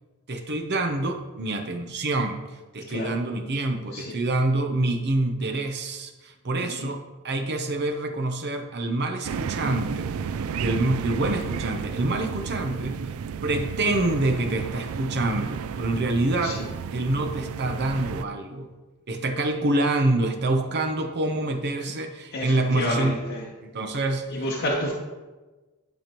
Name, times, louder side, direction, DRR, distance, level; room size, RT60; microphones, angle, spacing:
voice 1, 0.3-2.4 2.7-10.1 10.6-13.0 13.4-16.6 16.9-18.7 19.1-23.2 23.6-24.4, right 2 dB, 50° right, 5 dB, 0.7 m, -26 dB
voice 2, 6.6-6.9 16.4-16.6 22.3-23.4 24.3-24.9, left 1 dB, 55° left, -3 dB, 0.9 m, -29 dB
sound 1, 9.2-18.2, right 6 dB, 70° right, 0.3 m, -32 dB
11.5 x 5.2 x 3.0 m, 1.2 s
head